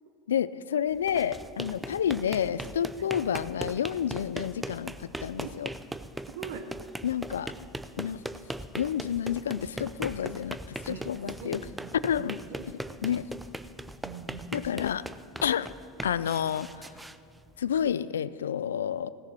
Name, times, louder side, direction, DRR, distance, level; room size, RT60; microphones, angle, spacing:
voice 1, 0.3-5.7 7.0-7.5 8.0-8.2 8.8-11.6 12.0-12.4 13.0-13.3 14.5-15.0 15.4-15.7 16.0-16.9 17.6-19.1, left 9 dB, 90° left, 17 dB, 0.3 m, -29 dB
sound 1, 0.9-17.9, right 1 dB, 10° right, 0.5 m, -40 dB
voice 2, 6.3-6.7 10.9-11.1 11.4-12.6 14.0-14.6, right 6 dB, 75° right, 7 dB, 1.1 m, -42 dB
16.5 x 6.9 x 6.0 m, 2.4 s
hypercardioid pair, 90°, 0 cm